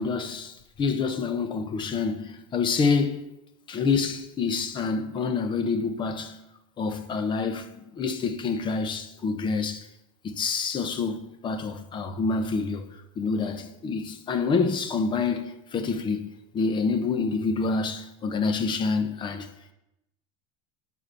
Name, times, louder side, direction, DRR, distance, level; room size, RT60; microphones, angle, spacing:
voice 1, 0.0-3.3 3.7-6.4 6.8-9.9 10.2-12.9 13.2-19.5, left 4 dB, 30° left, 1.2 m, -27 dB
12.0 x 4.9 x 7.0 m
supercardioid pair, 125°, 17 cm